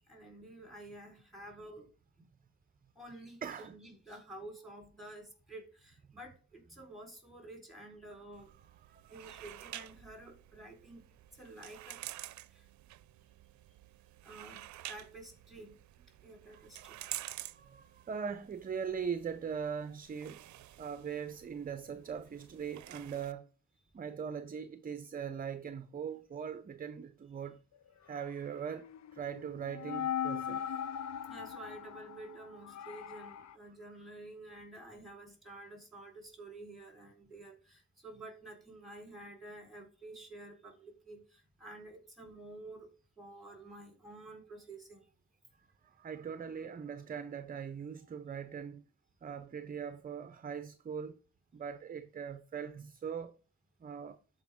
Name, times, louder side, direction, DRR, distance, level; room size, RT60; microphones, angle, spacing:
voice 1, 0.1-1.9 3.0-8.5 9.1-11.0 11.4-12.0 12.5-12.6 14.2-15.8 16.2-17.0 31.3-42.9 43.2-45.1, right 2 dB, ahead, 4.2 m, -50 dB
voice 2, 3.4-3.7 8.9-9.1 16.5-20.4 20.8-23.5 23.9-27.6 28.0-28.9 29.1-30.6 45.8-48.8 49.2-51.2 51.5-53.4 53.8-54.2, right 7 dB, 30° right, 0.6 m, -41 dB
sound 1, 8.3-23.3, right 15 dB, 75° right, 0.5 m, -50 dB
sound 2, 28.8-33.6, left 9 dB, 70° left, 0.6 m, -39 dB
12.5 x 5.0 x 3.6 m
cardioid pair, 115°, 29 cm